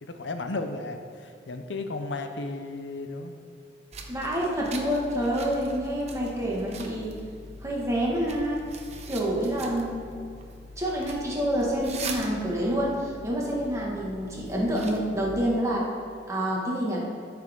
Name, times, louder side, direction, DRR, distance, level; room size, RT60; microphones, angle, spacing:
voice 1, 0.0-3.3, left 3 dB, 85° left, 7 dB, 0.7 m, -34 dB
sound 1, 3.9-15.3, right 2 dB, 40° right, 0.9 m, -42 dB
voice 2, 4.1-7.1 7.6-8.6 9.1-10.1 10.8-15.9 16.3-17.0, equal, 15° right, -4 dB, 1.6 m, -27 dB
14.0 x 6.1 x 3.7 m, 2.4 s
head